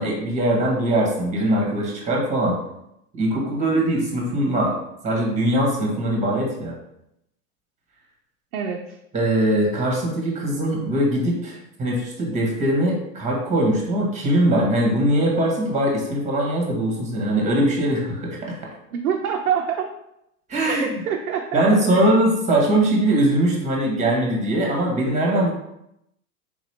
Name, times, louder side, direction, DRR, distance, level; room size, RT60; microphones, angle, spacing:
voice 1, 0.0-2.6 3.2-4.7 5.0-6.7 9.1-18.5 20.5-20.9 21.5-25.5, right 1 dB, 15° right, -1 dB, 1.2 m, -21 dB
voice 2, 8.5-9.0 18.9-19.9 20.7-21.6 21.9-22.1, right 7 dB, 85° right, 1 dB, 0.6 m, -25 dB
3.8 x 3.0 x 3.2 m, 0.81 s
hypercardioid pair, 110°, 42 cm